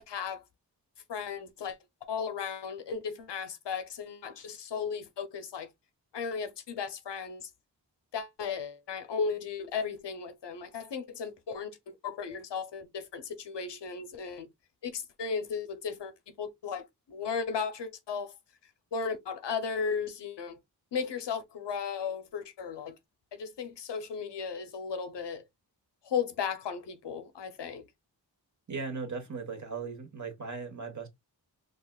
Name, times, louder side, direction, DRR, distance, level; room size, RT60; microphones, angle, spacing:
voice 1, 0.1-0.4 1.1-1.8 2.1-5.7 6.1-7.5 8.1-14.5 14.8-18.3 18.9-20.6 20.9-22.9 23.3-25.5 26.0-27.8, left 6 dB, 85° left, 0.7 m, -35 dB
voice 2, 28.7-31.1, right 4 dB, 45° right, 1.4 m, -38 dB
4.0 x 2.4 x 2.3 m
cardioid pair, 40°, 41 cm